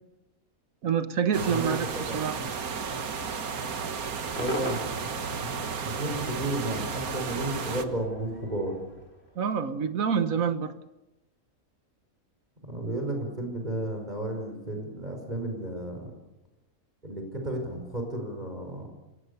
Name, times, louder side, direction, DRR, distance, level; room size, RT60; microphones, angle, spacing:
voice 1, 0.8-2.4 9.3-10.7, right 7 dB, 70° right, 11 dB, 1.6 m, -27 dB
sound 1, 1.3-7.8, right 6 dB, 90° right, 1.9 m, -33 dB
voice 2, 1.4-2.5 4.4-4.8 5.4-5.6 5.9-8.7 12.7-16.1 17.0-18.9, right 1 dB, 30° right, 2 dB, 5.4 m, -33 dB
Cheering / Crowd / Fireworks, 4.4-9.6, left 1 dB, 45° left, 4.7 m, -41 dB
27.5 x 22.0 x 6.9 m, 0.98 s
omnidirectional pair, 1.5 m